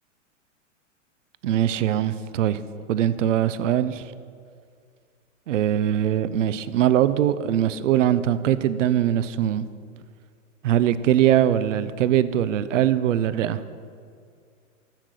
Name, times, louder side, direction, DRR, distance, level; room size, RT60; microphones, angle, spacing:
voice 1, 1.4-2.6 2.9-4.1 5.5-9.7 10.6-13.6, right 11 dB, 70° right, 14 dB, 0.7 m, -22 dB
15.0 x 7.4 x 6.3 m, 2.2 s
hypercardioid pair, 110°, 39 cm